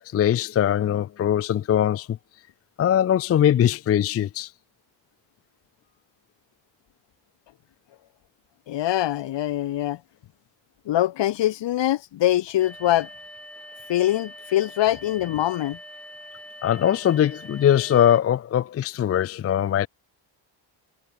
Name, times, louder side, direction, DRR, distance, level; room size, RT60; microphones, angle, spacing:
voice 1, 0.0-2.2 2.8-4.5 16.6-19.9, left 10 dB, 35° left, 0.4 m, -21 dB
voice 2, 8.7-10.0 10.9-13.1 13.9-15.8, left 13 dB, 70° left, 2.9 m, -23 dB
sound 1, 12.6-18.2, left 1 dB, 5° left, 6.7 m, -43 dB
cardioid pair, 175°, 45 cm